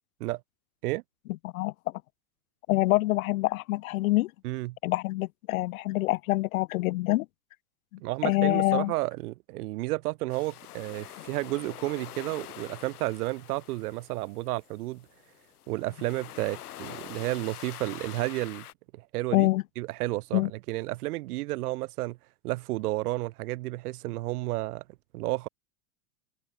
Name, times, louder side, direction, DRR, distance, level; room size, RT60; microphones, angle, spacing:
voice 1, 1.4-1.9 2.7-4.3 4.8-7.3 7.9-8.9 19.3-19.6 20.3-20.5, left 19 dB, 65° left, 1.2 m, -26 dB
voice 2, 4.4-4.8 8.0-15.1 15.7-18.7 18.9-19.5 19.8-22.2 22.4-24.8 25.1-25.5, right 19 dB, 90° right, 0.5 m, -32 dB
sound 1, 10.3-18.7, left 12 dB, 90° left, 4.3 m, -45 dB
supercardioid pair, 140°, 44 cm